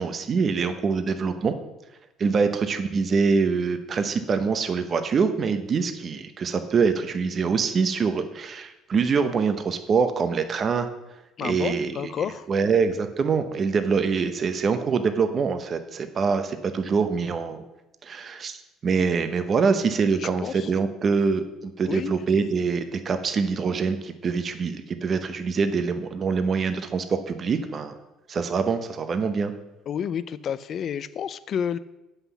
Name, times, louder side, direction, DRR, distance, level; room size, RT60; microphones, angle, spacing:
voice 1, 0.0-1.5 2.2-10.9 11.4-11.9 12.5-17.6 18.0-18.6 18.8-27.9 28.3-29.5, right 5 dB, 40° right, 9 dB, 0.8 m, -24 dB
voice 2, 11.4-12.5 20.2-20.7 21.8-22.1 29.9-31.8, left 8 dB, 50° left, 16 dB, 0.4 m, -30 dB
8.0 x 5.7 x 7.0 m, 0.96 s
cardioid pair, 110°, 0 cm